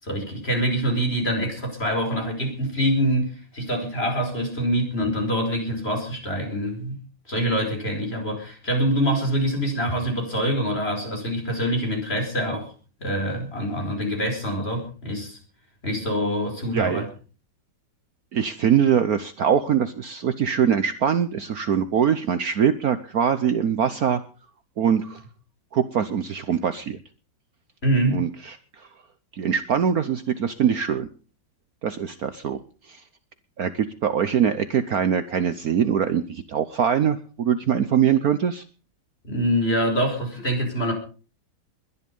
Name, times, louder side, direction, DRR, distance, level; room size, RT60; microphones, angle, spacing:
voice 1, 0.0-7.0 7.3-12.7 13.0-15.4 15.8-17.1 27.8-28.2 39.2-40.9, equal, 30° left, 3 dB, 5.3 m, -25 dB
voice 2, 16.7-17.1 18.3-24.2 24.8-25.2 25.7-27.0 28.1-28.9 29.3-31.1 31.8-32.6 32.9-33.0 33.6-38.6, right 8 dB, 60° right, 12 dB, 1.3 m, -23 dB
21.0 x 11.0 x 5.4 m, 0.38 s
omnidirectional pair, 2.0 m